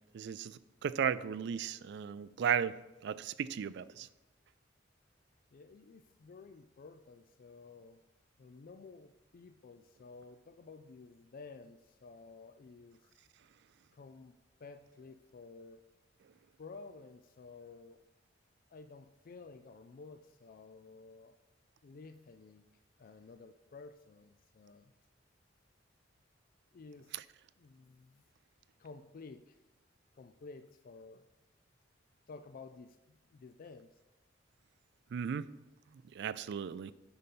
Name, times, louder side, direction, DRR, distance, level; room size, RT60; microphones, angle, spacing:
voice 1, 0.1-2.8 3.0-4.1 27.1-27.2 35.1-35.5 36.1-36.9, right 7 dB, 60° right, 16 dB, 0.3 m, -35 dB
voice 2, 5.5-8.0 8.4-13.2 13.9-15.8 16.6-18.0 18.7-21.4 21.8-22.6 23.0-24.9 26.7-27.2 27.6-28.2 28.8-29.6 30.1-31.3 32.3-34.0, left 4 dB, 50° left, 9 dB, 0.4 m, -53 dB
9.8 x 4.0 x 5.4 m, 1.0 s
head